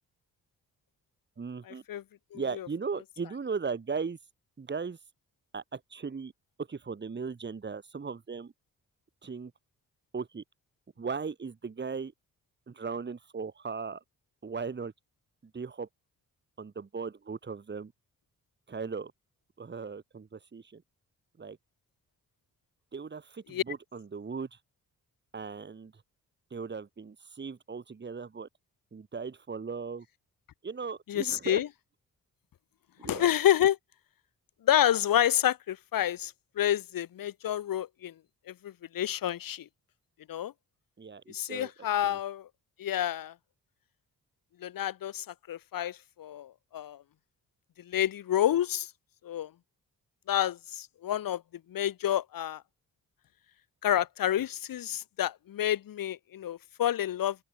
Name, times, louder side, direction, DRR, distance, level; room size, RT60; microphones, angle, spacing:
voice 1, 1.4-1.8 2.3-4.2 4.6-5.0 5.5-6.3 6.6-8.5 9.2-9.5 10.1-10.4 11.0-12.1 12.7-14.0 14.4-14.9 15.4-15.9 16.6-17.9 18.7-19.1 19.6-20.8 21.4-21.6 22.9-24.6 25.3-25.9 26.5-28.5 28.9-30.1 30.6-31.6 33.0-33.3 41.0-41.7 42.0-42.2, right 5 dB, 30° right, 1.9 m, -37 dB
voice 2, 31.1-31.7 33.1-33.8 34.6-38.1 38.5-39.6 40.3-40.5 41.3-42.5 42.8-43.3 44.6-47.0 47.9-48.9 49.2-49.5 50.3-51.4 51.7-52.6 53.8-57.4, left 11 dB, 75° left, 1.5 m, -29 dB
open air
cardioid pair, 85°, 34 cm